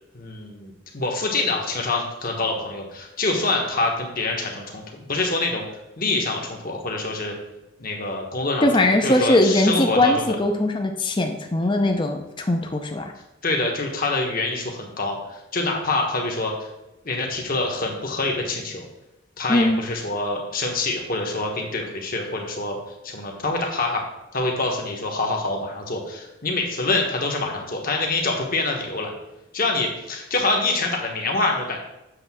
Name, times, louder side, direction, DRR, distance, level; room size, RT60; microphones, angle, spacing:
voice 1, 0.1-5.7 6.0-7.3 7.8-8.7 9.0-10.4 13.4-16.7 17.0-18.9 19.4-22.8 23.0-24.1 24.3-29.1 29.5-31.8, left 2 dB, 40° left, 1 dB, 1.2 m, -25 dB
voice 2, 8.6-13.1 19.5-19.8, left 1 dB, 25° left, 4 dB, 0.6 m, -20 dB
7.8 x 3.3 x 6.0 m, 0.94 s
head